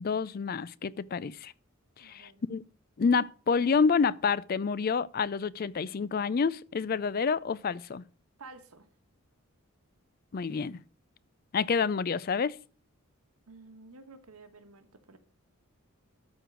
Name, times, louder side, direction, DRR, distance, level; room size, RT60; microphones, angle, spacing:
voice 1, 0.0-1.5 2.0-2.6 3.0-8.0 10.3-10.8 11.5-12.6, left 5 dB, 40° left, 0.4 m, -28 dB
voice 2, 2.0-2.4 8.4-8.9 13.5-15.2, right 3 dB, 80° right, 1.5 m, -51 dB
13.0 x 4.7 x 6.2 m
head